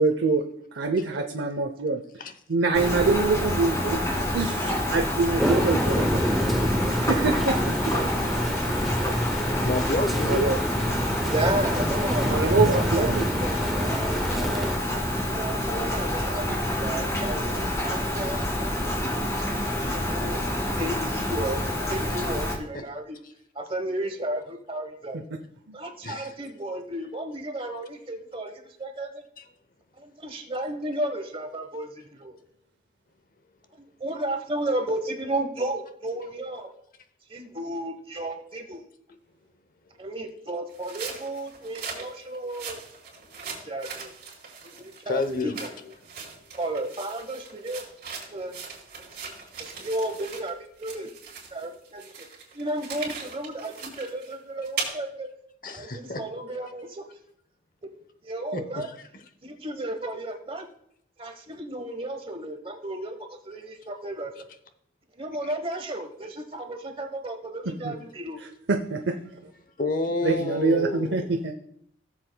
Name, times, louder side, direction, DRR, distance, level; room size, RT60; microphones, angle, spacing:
voice 1, 0.0-2.0 2.5-6.2 6.6-7.9 9.0-9.2 10.3-10.6 12.3-13.3 25.1-25.2 25.7-25.8 67.7-67.9 68.4-69.2 70.2-71.5, right 3 dB, 80° right, 4 dB, 0.7 m, -25 dB
Rain, 2.7-22.6, left 1 dB, 15° left, 1.9 m, -28 dB
sound 1, 5.4-14.8, equal, ahead, 0.6 m, -27 dB
voice 2, 9.6-10.5 22.1-22.3 22.7-22.9 26.0-26.3 29.4-29.5 45.1-45.6 49.7-49.9 52.9-53.1 55.6-56.2 58.5-59.0 65.4-65.5 69.8-71.4, left 2 dB, 50° left, 10 dB, 0.8 m, -30 dB
voice 3, 11.3-12.4 12.6-14.7 15.3-18.7 19.7-20.5 20.8-21.6 21.9-23.2 23.5-25.2 25.7-29.2 30.0-32.4 34.0-36.7 37.3-38.9 40.0-42.8 43.6-44.1 44.7-45.7 46.5-47.8 48.3-48.6 49.0-49.1 49.6-51.1 51.5-52.3 52.5-55.3 55.7-57.0 58.2-58.9 59.4-60.7 61.2-64.3 65.2-68.4, right 1 dB, 30° right, 6 dB, 1.1 m, -33 dB
sound 2, 40.7-50.5 50.8-54.9, right 5 dB, 55° right, 3.9 m, -39 dB
17.5 x 7.4 x 2.2 m, 0.70 s
head